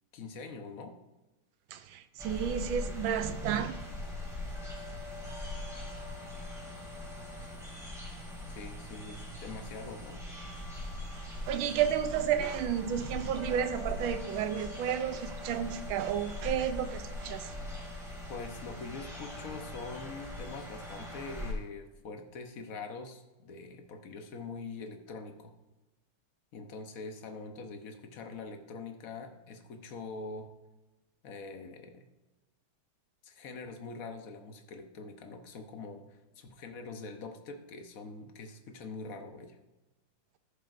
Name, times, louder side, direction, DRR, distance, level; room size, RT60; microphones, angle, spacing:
voice 1, 0.1-0.9 8.5-10.2 18.3-25.5 26.5-30.5 31.2-32.0 33.2-36.1 36.4-39.6, left 3 dB, 55° left, 1.1 m, -44 dB
voice 2, 1.7-3.7 11.1-17.5, right 9 dB, 75° right, 1.3 m, -32 dB
sound 1, 2.2-21.5, left 1 dB, ahead, 2.2 m, -41 dB
15.0 x 6.9 x 2.5 m
omnidirectional pair, 2.4 m